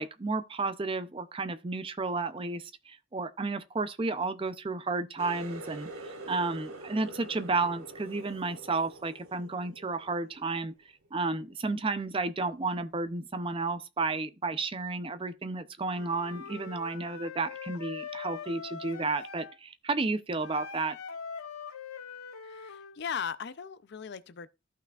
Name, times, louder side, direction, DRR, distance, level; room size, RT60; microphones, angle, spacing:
voice 1, 0.0-10.7 11.1-21.0, right 3 dB, 25° right, 0.4 m, -32 dB
Water tap faucet, 5.2-10.7 11.0-11.5 12.0-12.3 13.0-13.1, right 2 dB, 85° right, 1.4 m, -45 dB
Wind instrument woodwind instrument, 15.9-19.6 20.4-23.0, left 6 dB, 85° left, 0.8 m, -42 dB
voice 2, 22.4-24.5, left 7 dB, 50° left, 0.4 m, -38 dB
14.0 x 5.8 x 2.3 m
head